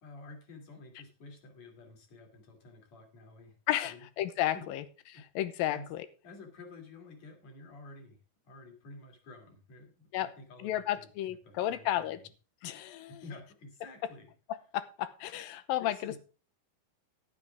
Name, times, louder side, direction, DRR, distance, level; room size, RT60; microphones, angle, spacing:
voice 1, 0.0-3.6 3.8-4.1 4.5-4.6 5.1-5.2 5.7-5.9 6.2-8.2 8.4-12.2 13.1-14.3 15.3-15.4 15.8-16.2, left 3 dB, 50° left, 4 dB, 3.9 m, -50 dB
voice 2, 3.7-4.8 5.4-6.1 10.1-10.3 10.6-12.2 12.6-13.2 14.5-16.2, left 13 dB, 80° left, 13 dB, 2.6 m, -33 dB
12.0 x 10.5 x 3.5 m, 0.36 s
omnidirectional pair, 4.3 m